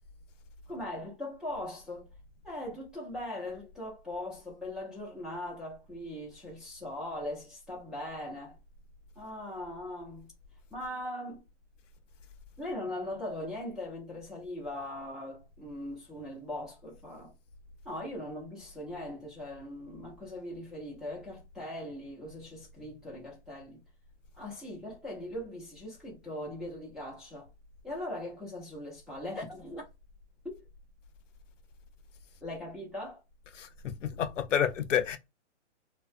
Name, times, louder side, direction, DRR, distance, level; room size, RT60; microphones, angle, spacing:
voice 1, 0.7-2.1 2.4-8.6 9.2-10.3 10.7-11.4 12.6-17.3 17.8-23.8 24.4-27.5 27.8-29.8 30.4-30.6 32.4-33.2, left 1 dB, ahead, 0.5 m, -40 dB
voice 2, 33.5-35.2, left 9 dB, 85° left, 0.6 m, -29 dB
2.4 x 2.2 x 2.4 m
hypercardioid pair, 140°, 36 cm